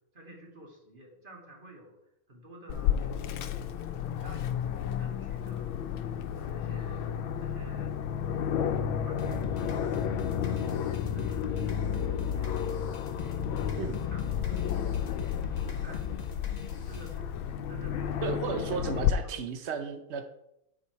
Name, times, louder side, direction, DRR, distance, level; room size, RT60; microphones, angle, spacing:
voice 1, 0.1-2.0 2.3-5.8 6.3-8.0 8.7-10.7 11.0-12.8 13.1-16.3 16.8-17.3 17.7-19.4, right 1 dB, 25° right, 0 dB, 2.1 m, -52 dB
Aircraft, 2.7-19.1, left 9 dB, 90° left, 1.5 m, -32 dB
sound 1, 9.2-17.2, left 5 dB, 70° left, 0.3 m, -43 dB
voice 2, 18.2-20.3, right 6 dB, 80° right, 8 dB, 0.6 m, -34 dB
9.4 x 6.9 x 4.6 m, 0.82 s
omnidirectional pair, 2.2 m